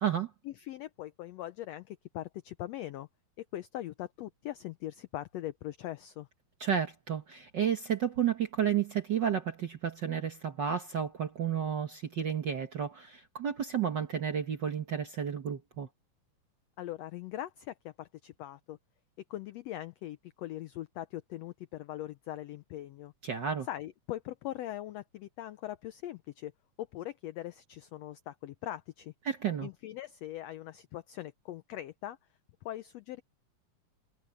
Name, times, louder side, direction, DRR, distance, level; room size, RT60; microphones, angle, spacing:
voice 1, 0.4-3.1 3.4-6.3 16.8-18.8 19.3-23.1 23.7-26.5 26.8-29.1 29.6-32.2 32.6-33.2, left 14 dB, 85° left, 1.5 m, -41 dB
voice 2, 6.6-15.9 23.2-23.7 29.2-29.7, right 8 dB, 55° right, 1.3 m, -32 dB
omnidirectional pair, 3.6 m